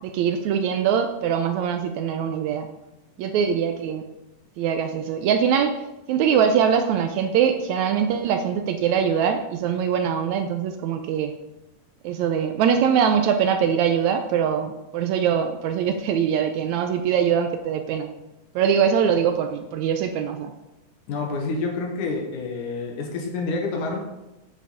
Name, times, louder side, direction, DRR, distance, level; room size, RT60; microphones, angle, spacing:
voice 1, 0.0-2.7 3.2-4.0 4.6-5.8 6.1-11.3 12.0-18.1 18.6-20.5, right 7 dB, 80° right, 6 dB, 1.8 m, -22 dB
voice 2, 21.1-24.0, left 3 dB, 80° left, 1 dB, 2.8 m, -28 dB
9.2 x 7.1 x 4.1 m, 0.95 s
omnidirectional pair, 3.5 m